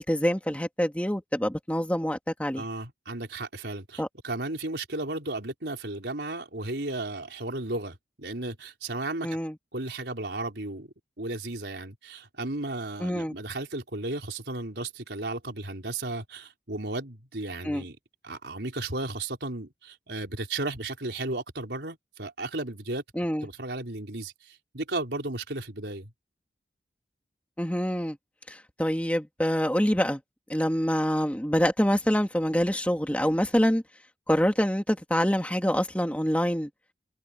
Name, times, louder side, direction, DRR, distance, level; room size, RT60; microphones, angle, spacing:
voice 1, 0.0-2.7 4.0-4.1 9.2-9.5 13.0-13.4 17.6-17.8 23.2-23.5 27.6-28.2 28.5-30.2 30.5-33.8 34.3-36.7, equal, 10° left, 2.0 m, -26 dB
voice 2, 2.5-9.4 9.7-18.0 18.2-23.0 23.4-26.1, right 2 dB, 80° right, 4.0 m, -34 dB
head